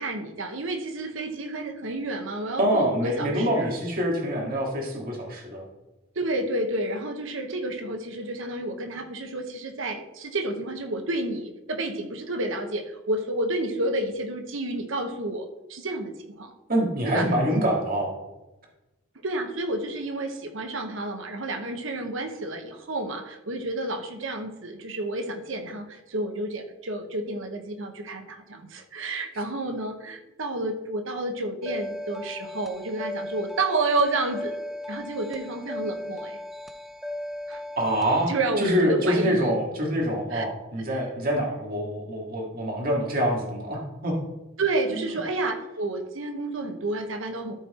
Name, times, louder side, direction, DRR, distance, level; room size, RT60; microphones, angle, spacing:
voice 1, 0.0-3.7 6.1-16.5 17.1-17.3 19.2-34.6 34.9-36.4 37.5-37.6 38.3-39.4 40.3-40.4 40.9-41.0 44.6-47.5, right 2 dB, 70° right, 5 dB, 1.0 m, -30 dB
voice 2, 2.6-5.6 16.7-18.1 37.8-38.3 38.6-44.1 44.9-45.0, equal, 45° right, -1 dB, 2.1 m, -25 dB
sound 1, 31.6-38.2, left 1 dB, ahead, 0.5 m, -36 dB
13.0 x 4.5 x 4.3 m, 1.0 s
head